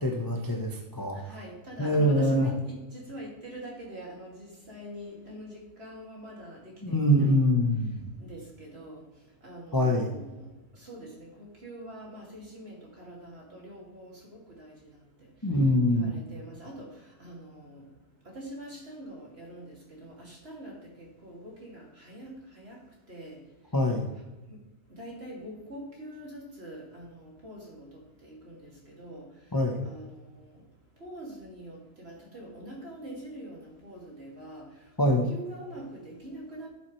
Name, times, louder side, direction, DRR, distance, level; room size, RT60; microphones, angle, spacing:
voice 1, 0.0-1.2 1.8-2.5 6.8-8.0 9.7-10.2 15.4-16.1 23.7-24.1 29.5-29.8 35.0-35.3, left 1 dB, 20° left, 0 dB, 0.7 m, -24 dB
voice 2, 1.2-7.5 8.2-9.0 9.4-10.4 10.8-14.7 15.9-16.9 17.2-17.8 18.3-22.3 22.6-22.8 23.1-23.4 24.5-24.6 24.9-27.9 28.2-28.7 29.0-29.3 29.8-30.1 31.0-34.7 35.1-36.7, right 1 dB, 35° right, -3 dB, 2.8 m, -44 dB
12.0 x 7.2 x 3.2 m, 1.1 s
omnidirectional pair, 1.8 m